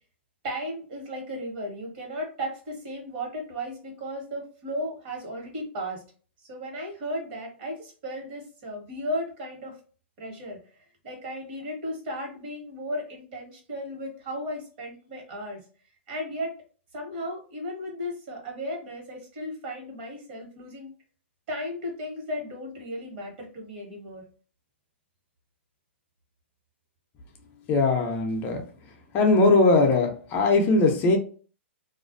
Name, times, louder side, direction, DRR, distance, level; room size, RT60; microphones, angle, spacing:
voice 1, 0.4-6.0 6.4-9.8 10.2-10.6 11.0-15.6 16.1-16.5 16.9-20.9 21.5-24.2, equal, 50° right, 1 dB, 1.3 m, -35 dB
voice 2, 27.7-28.6 29.1-31.2, left 3 dB, 30° left, 3 dB, 0.5 m, -20 dB
2.4 x 2.1 x 2.5 m, 0.39 s
hypercardioid pair, 135°, 6 cm